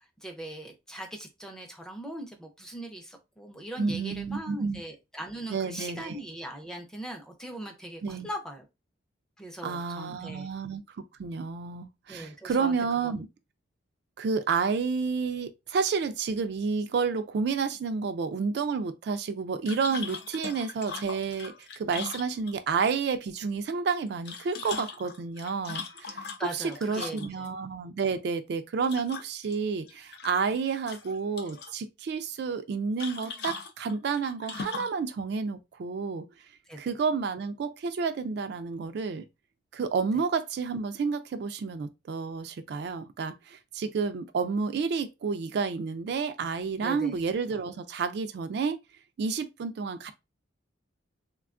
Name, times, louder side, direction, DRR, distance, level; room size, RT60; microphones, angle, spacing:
voice 1, 0.2-8.6 9.4-10.5 12.1-12.7 13.0-13.1 26.4-27.5 36.7-36.8 46.8-47.1, right 1 dB, 5° left, 0.5 m, -40 dB
voice 2, 3.8-4.8 5.5-6.2 8.0-8.3 9.6-10.8 11.2-13.3 14.2-26.3 26.5-36.2 36.8-39.2 39.7-48.8 49.2-50.1, right 5 dB, 55° right, 0.3 m, -30 dB
sound 1, 19.7-22.8 24.1-27.5 28.8-29.6 29.9-30.6 30.9-31.7 33.0-35.0, left 5 dB, 55° left, 0.5 m, -40 dB
3.4 x 2.2 x 2.4 m
head